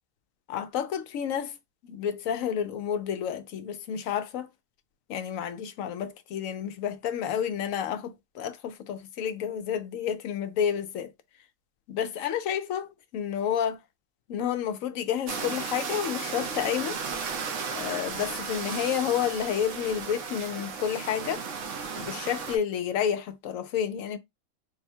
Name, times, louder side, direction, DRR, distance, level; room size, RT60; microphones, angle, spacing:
voice 1, 0.5-1.6 1.9-4.5 5.1-11.1 11.9-13.8 14.3-17.0 17.7-21.4 22.0-24.2, left 9 dB, 75° left, 1.0 m, -30 dB
sound 1, 15.3-22.6, right 5 dB, 65° right, 1.2 m, -35 dB
4.0 x 2.2 x 4.3 m
omnidirectional pair, 1.4 m